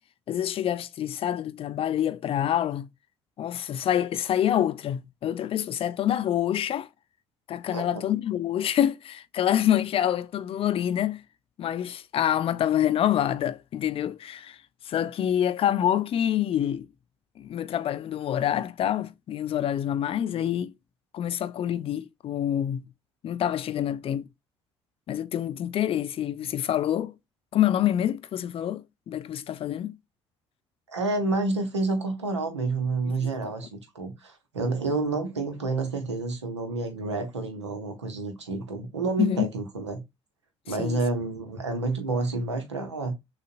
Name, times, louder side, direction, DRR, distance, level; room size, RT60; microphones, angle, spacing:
voice 1, 0.3-2.9 3.4-6.9 7.5-11.2 11.6-14.6 14.8-16.9 17.4-20.7 21.1-22.9 23.2-24.3 25.1-27.1 27.5-30.0 33.0-33.5 39.2-39.5 40.7-41.0, left 10 dB, 40° left, 0.5 m, -26 dB
voice 2, 30.9-40.0 40.7-43.1, right 3 dB, 85° right, 1.0 m, -29 dB
6.4 x 2.4 x 2.5 m
figure-of-eight pair, 55°, 14 cm